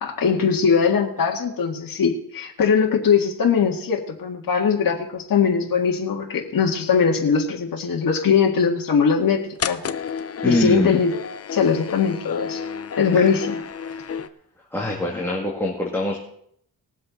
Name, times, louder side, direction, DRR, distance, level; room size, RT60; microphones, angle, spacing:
voice 1, 0.0-9.8 10.5-11.1 11.5-12.6 13.0-13.6, left 6 dB, 55° left, 0 dB, 1.9 m, -20 dB
sound 1, 9.6-14.3, left 6 dB, 35° left, 0.6 m, -31 dB
voice 2, 10.4-10.9 13.1-13.3 13.8-14.2 14.7-16.2, left 1 dB, 5° left, -3 dB, 2.2 m, -24 dB
20.0 x 7.6 x 4.0 m, 0.69 s
cardioid pair, 105°, 40 cm